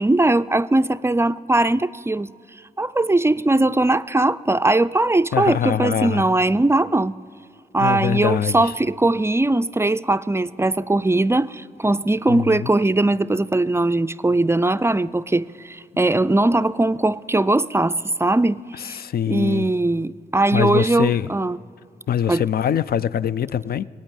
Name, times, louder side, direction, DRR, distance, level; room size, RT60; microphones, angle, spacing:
voice 1, 0.0-2.3 2.8-7.1 7.7-19.0 19.3-21.6 22.3-22.4, right 2 dB, 15° right, 0.4 m, -20 dB
voice 2, 5.3-6.3 7.8-8.7 12.3-12.7 18.8-19.7 20.5-21.3 22.1-23.9, left 9 dB, 65° left, 0.4 m, -23 dB
18.0 x 8.8 x 9.1 m
cardioid pair, 55°, 17 cm